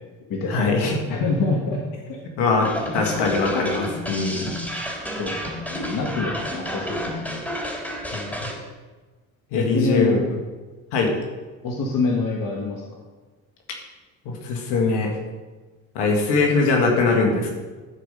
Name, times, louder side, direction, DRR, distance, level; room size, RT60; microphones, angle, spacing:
voice 1, 0.5-1.0 2.4-4.5 8.1-8.4 9.5-10.2 10.9-11.1 14.3-15.1 16.0-17.5, left 4 dB, 70° left, 1 dB, 1.8 m, -21 dB
voice 2, 1.1-1.8 5.2-5.4 5.6-7.4 9.5-10.2 11.6-12.8, left 3 dB, 50° left, 0 dB, 1.6 m, -25 dB
sound 1, 2.6-8.5, equal, 5° left, 3.3 m, -30 dB
11.0 x 4.9 x 5.2 m, 1.3 s
hypercardioid pair, 65°, 43 cm